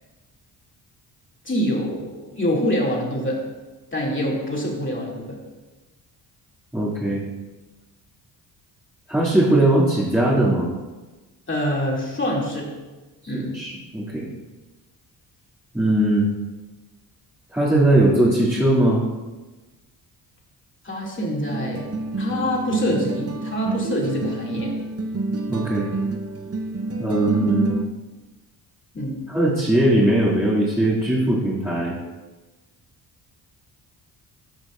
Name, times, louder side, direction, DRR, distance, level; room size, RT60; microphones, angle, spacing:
voice 1, 1.4-3.4 3.9-5.4 11.5-12.7 13.3-13.5 20.8-21.9 22.2-24.7 28.9-29.2, equal, 25° left, -3 dB, 2.6 m, -25 dB
voice 2, 6.7-7.2 9.1-10.7 13.3-14.3 15.7-16.3 17.5-19.0 25.5-25.9 27.0-27.7 29.3-31.9, right 1 dB, 5° right, -10 dB, 2.5 m, -19 dB
sound 1, 21.5-27.9, right 2 dB, 35° right, 0.8 m, -28 dB
12.5 x 6.2 x 2.6 m, 1.2 s
cardioid pair, 65°, 45 cm